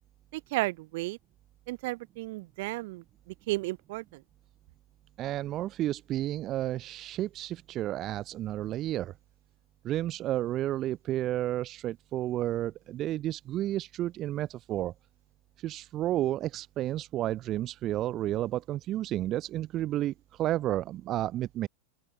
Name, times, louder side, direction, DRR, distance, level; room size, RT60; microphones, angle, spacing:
voice 1, 0.3-1.2 1.7-4.2, right 21 dB, 50° right, 1.3 m, -34 dB
voice 2, 5.2-9.1 9.8-14.9 15.6-21.7, right 13 dB, 35° right, 0.8 m, -31 dB
open air
figure-of-eight pair, 90°, 0 cm